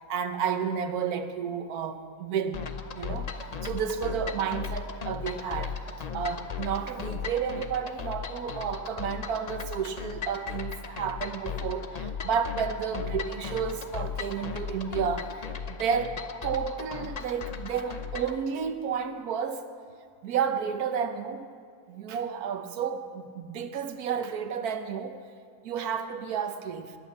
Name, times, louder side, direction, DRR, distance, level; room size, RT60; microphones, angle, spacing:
voice 1, 0.1-2.6 2.9-3.3 3.6-19.6 20.2-21.5 21.9-25.2 25.6-27.0, right 7 dB, 90° right, 8 dB, 1.3 m, -31 dB
sound 1, 2.5-18.4, left 6 dB, 40° left, 0.6 m, -37 dB
21.0 x 9.1 x 7.0 m, 2.1 s
omnidirectional pair, 1.5 m